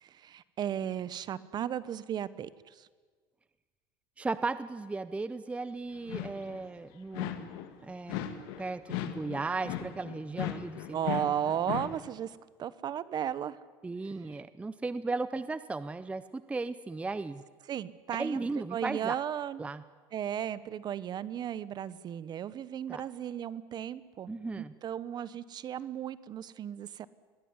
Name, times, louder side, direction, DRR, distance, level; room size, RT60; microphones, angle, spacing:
voice 1, 0.0-2.9 10.9-13.6 14.3-14.4 17.7-19.7 20.1-27.1, right 10 dB, 40° right, 17 dB, 0.9 m, -35 dB
voice 2, 4.2-7.5 7.8-8.3 8.6-11.0 13.8-17.4 18.2-19.2 19.6-19.8 22.9-23.0 24.3-24.7, right 3 dB, 10° right, 14 dB, 0.6 m, -36 dB
sound 1, 6.0-6.6 7.1-7.7 8.1-12.0, left 11 dB, 85° left, 2.1 m, -37 dB
22.0 x 17.0 x 9.7 m, 1.5 s
supercardioid pair, 130°, 12 cm